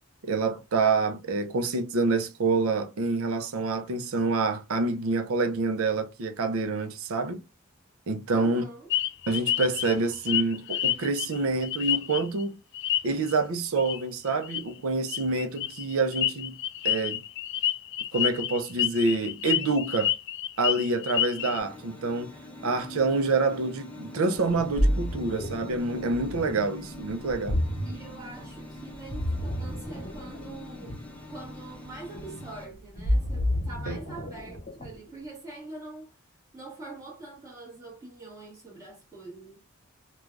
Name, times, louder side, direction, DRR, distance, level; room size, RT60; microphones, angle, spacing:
voice 1, 0.2-7.4 8.1-8.6 9.3-12.6 13.0-16.5 16.8-17.2 18.1-20.1 20.6-22.4 22.6-27.6 33.9-34.0, right 3 dB, 80° right, 0.5 m, -27 dB
voice 2, 8.3-8.9 27.8-31.0 31.3-36.1 36.5-39.6, right 2 dB, 15° right, 1.4 m, -43 dB
sound 1, 8.9-12.4 12.7-13.3 13.8-14.0 14.3-14.6 15.1-21.6, left 11 dB, 55° left, 0.3 m, -29 dB
sound 2, 21.4-32.7, left 1 dB, 5° left, 0.8 m, -44 dB
Ocean, 24.4-35.1, equal, 40° left, 0.9 m, -31 dB
3.2 x 2.3 x 2.4 m
head